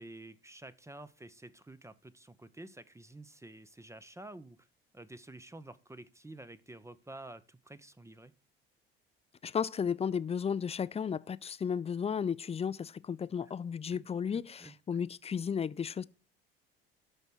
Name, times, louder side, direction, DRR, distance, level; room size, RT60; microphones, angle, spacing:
voice 1, 0.0-4.7 4.9-8.3 13.4-13.5 13.9-14.0 14.3-15.0, right 2 dB, 10° right, 0.8 m, -50 dB
voice 2, 9.4-16.0, left 7 dB, 20° left, 0.5 m, -34 dB
13.5 x 5.4 x 4.6 m
hypercardioid pair, 60°, 30 cm